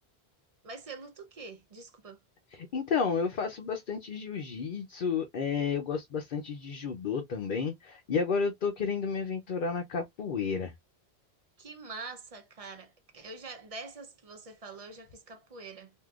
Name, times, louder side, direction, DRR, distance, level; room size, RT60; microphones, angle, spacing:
voice 1, 0.6-2.2 11.6-15.9, right 3 dB, 40° right, 0.7 m, -45 dB
voice 2, 2.5-10.7, left 5 dB, 55° left, 0.7 m, -31 dB
3.6 x 2.6 x 2.3 m
omnidirectional pair, 1.1 m